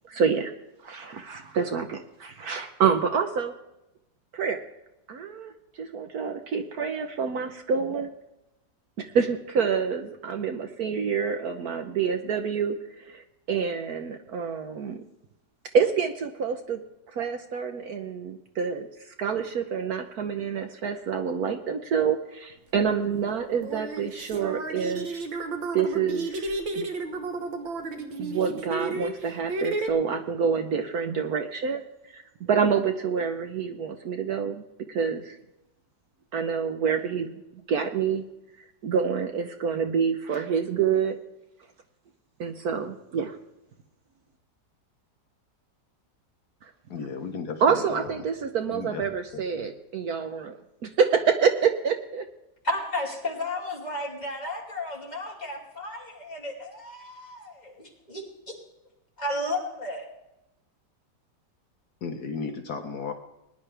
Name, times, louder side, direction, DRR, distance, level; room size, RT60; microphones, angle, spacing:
voice 1, 0.1-0.5 0.8-3.5 4.3-4.6 5.1-8.1 9.0-15.0 15.7-16.8 17.1-25.2 25.7-26.8 28.2-31.8 32.1-34.6 34.9-35.4 36.3-37.3 37.7-38.2 38.8-41.2 42.4-43.4 47.6-52.2, right 6 dB, 60° right, 7 dB, 1.2 m, -27 dB
sound 1, 22.7-22.9 23.5-29.9, right 3 dB, 90° right, 2.1 m, -32 dB
voice 2, 46.9-48.2 48.7-49.7 62.0-63.1, left 5 dB, 60° left, 5 dB, 1.4 m, -35 dB
voice 3, 52.6-58.5 59.2-60.0, left 1 dB, 20° left, -2 dB, 2.8 m, -33 dB
20.0 x 10.5 x 3.4 m, 0.92 s
omnidirectional pair, 2.0 m